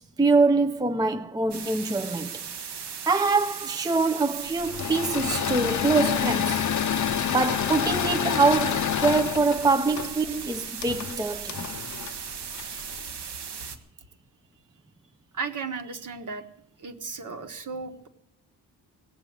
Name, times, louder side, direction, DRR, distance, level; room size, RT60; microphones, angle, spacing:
voice 1, 0.0-2.4 2.7-6.7 7.3-11.7, right 3 dB, 10° right, 0.5 m, -24 dB
sound 1, 1.5-13.8, right 7 dB, 85° right, 1.5 m, -37 dB
Engine / Mechanisms, 4.6-13.0, left 9 dB, 50° left, 0.5 m, -28 dB
voice 2, 15.3-16.5 16.8-18.1, right 4 dB, 50° right, 1.5 m, -35 dB
17.5 x 7.5 x 9.5 m
wide cardioid pair, 110°, 39 cm